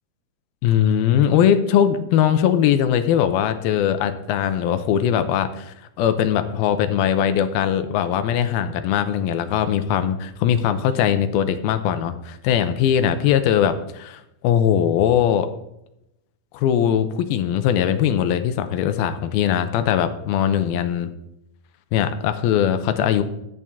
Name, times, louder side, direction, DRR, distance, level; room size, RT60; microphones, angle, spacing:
voice 1, 0.6-15.5 16.5-21.1 21.9-23.2, left 9 dB, 85° left, 9 dB, 2.6 m, -20 dB
13.5 x 8.7 x 3.6 m, 0.83 s
omnidirectional pair, 4.4 m